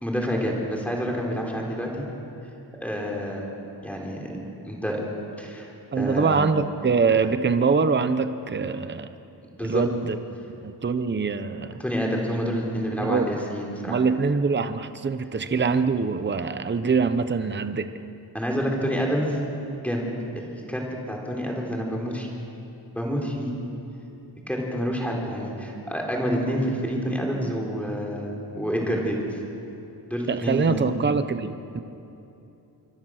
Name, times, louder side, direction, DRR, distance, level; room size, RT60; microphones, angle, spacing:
voice 1, 0.0-2.1 2.8-3.5 3.8-4.3 4.6-5.0 5.4-6.4 9.6-9.8 11.8-14.0 18.3-19.4 19.8-20.0 20.4-22.3 22.9-23.5 24.5-29.4 30.1-30.9, equal, 5° left, -1 dB, 3.8 m, -28 dB
voice 2, 5.9-9.1 9.6-10.2 10.5-11.8 13.0-13.4 13.9-18.0 30.3-31.8, right 5 dB, 25° right, 10 dB, 0.8 m, -24 dB
26.0 x 24.5 x 6.4 m, 2.9 s
wide cardioid pair, 160°, 40 cm